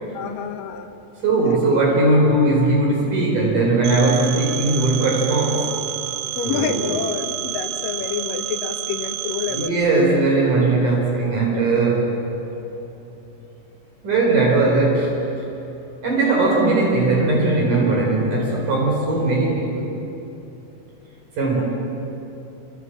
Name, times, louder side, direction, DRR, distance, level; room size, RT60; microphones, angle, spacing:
voice 1, 0.1-0.9 1.4-1.6 6.4-9.8, left 7 dB, 90° left, 6 dB, 3.2 m, -28 dB
voice 2, 1.2-5.7 6.4-6.8 9.5-12.2 14.0-15.1 16.0-19.9 21.4-21.6, right 2 dB, 70° right, -2 dB, 6.0 m, -19 dB
Telephone, 3.8-9.7, right 14 dB, 85° right, 3.4 m, -29 dB
28.0 x 26.5 x 7.6 m, 3.0 s
omnidirectional pair, 3.8 m